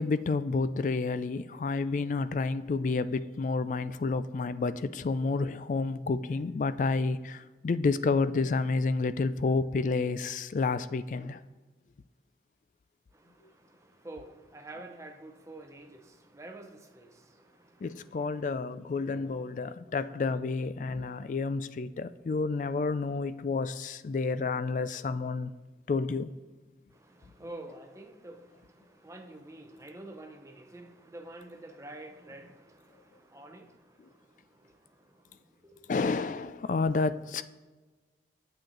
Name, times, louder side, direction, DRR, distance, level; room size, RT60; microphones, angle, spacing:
voice 1, 0.0-11.4 17.8-25.5 25.9-26.3 35.9-37.4, left 4 dB, 45° left, 14 dB, 0.3 m, -30 dB
voice 2, 13.1-18.5 26.9-35.8, right 2 dB, 15° right, 5 dB, 0.7 m, -49 dB
9.0 x 7.7 x 3.8 m, 1.3 s
head